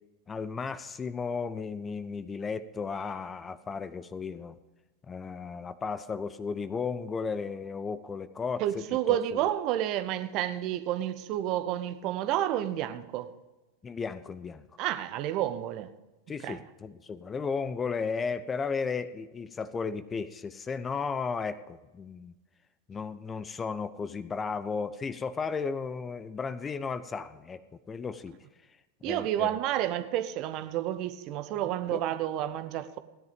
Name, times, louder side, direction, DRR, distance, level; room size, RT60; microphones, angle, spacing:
voice 1, 0.3-4.6 5.1-9.2 13.8-14.6 16.3-22.3 22.9-27.6 27.9-28.4 29.0-29.6 31.9-32.0, left 5 dB, 20° left, 0.6 m, -34 dB
voice 2, 8.6-13.3 14.8-15.9 16.4-16.6 29.0-33.0, right 12 dB, 40° right, 0.9 m, -30 dB
16.5 x 10.5 x 5.1 m
figure-of-eight pair, 90°, 0 cm